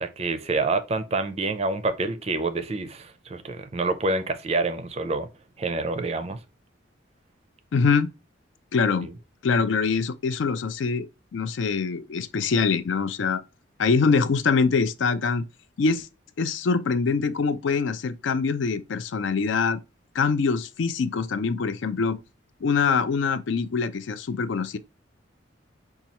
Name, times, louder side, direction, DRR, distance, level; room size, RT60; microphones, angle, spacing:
voice 1, 0.0-5.3 5.6-6.4 9.0-9.1, right 3 dB, 30° right, 0.4 m, -27 dB
voice 2, 7.7-8.1 8.7-9.1 9.4-11.1 11.3-13.4 13.8-15.4 15.8-16.1 16.4-19.8 20.1-22.2 22.6-24.8, left 5 dB, 75° left, 0.4 m, -24 dB
5.4 x 2.3 x 2.8 m
head